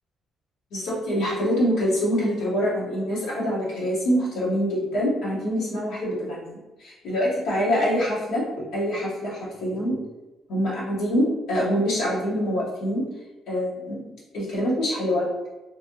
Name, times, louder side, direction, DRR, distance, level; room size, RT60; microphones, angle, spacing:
voice 1, 0.7-6.5 6.8-10.0 10.5-13.0 13.5-14.0 14.3-15.3, equal, 85° left, -7 dB, 1.2 m, -25 dB
3.2 x 2.6 x 2.8 m, 1.1 s
cardioid pair, 90°, 0 cm